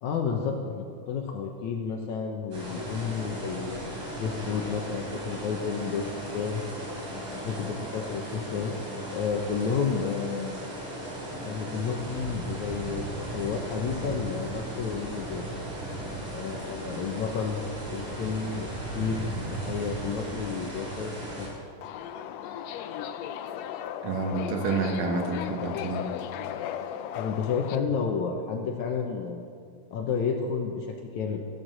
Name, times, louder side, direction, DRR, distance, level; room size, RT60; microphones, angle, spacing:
voice 1, 0.0-3.8 4.2-6.6 7.3-8.7 9.1-10.6 11.4-13.1 13.3-15.5 16.3-17.6 17.9-21.5 27.1-29.4 29.9-31.4, left 6 dB, 70° left, 2 dB, 2.2 m, -31 dB
sound 1, 2.5-21.5, right 1 dB, 55° right, 5.8 m, -36 dB
Subway metro underground, 21.8-27.8, left 9 dB, 85° left, 1.5 m, -36 dB
voice 2, 24.0-26.1, right 4 dB, 75° right, 3 dB, 2.8 m, -29 dB
15.0 x 9.3 x 7.6 m, 2.2 s
omnidirectional pair, 3.8 m